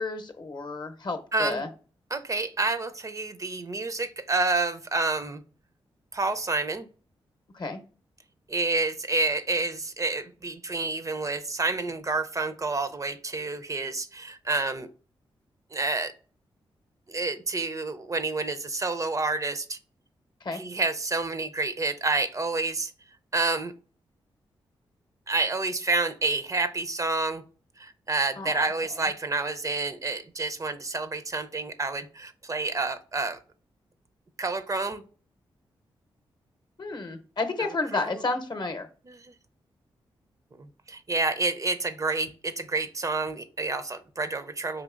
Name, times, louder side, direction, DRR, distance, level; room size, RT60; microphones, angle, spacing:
voice 1, 0.0-1.7 7.5-7.8 20.4-20.6 28.4-28.7 36.8-38.9, left 3 dB, 50° left, 7 dB, 0.7 m, -31 dB
voice 2, 1.3-1.6 2.1-5.4 6.1-6.9 8.5-14.9 15.7-16.1 17.1-19.8 20.5-22.9 23.3-23.7 25.3-27.4 27.8-33.4 34.4-35.0 37.6-38.2 39.1-39.3 40.9-44.8, right 3 dB, 35° right, 10 dB, 0.4 m, -29 dB
3.9 x 2.9 x 2.4 m, 0.38 s
cardioid pair, 55°, 10 cm